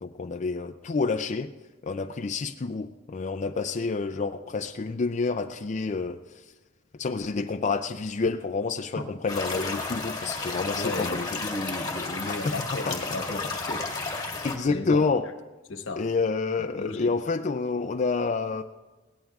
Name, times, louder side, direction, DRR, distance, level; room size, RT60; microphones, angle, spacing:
voice 1, 0.0-1.5 1.8-6.2 6.9-11.4 12.3-12.5 12.9-13.0 14.4-15.3 16.0-18.6, left 4 dB, 40° left, 6 dB, 0.4 m, -28 dB
sound 1, 9.3-14.6, left 3 dB, 20° left, 1.7 m, -32 dB
voice 2, 10.7-13.9 14.7-15.1 15.7-16.1 16.6-17.2, left 2 dB, 80° left, 6 dB, 1.1 m, -35 dB
21.5 x 17.0 x 2.4 m, 1.2 s
head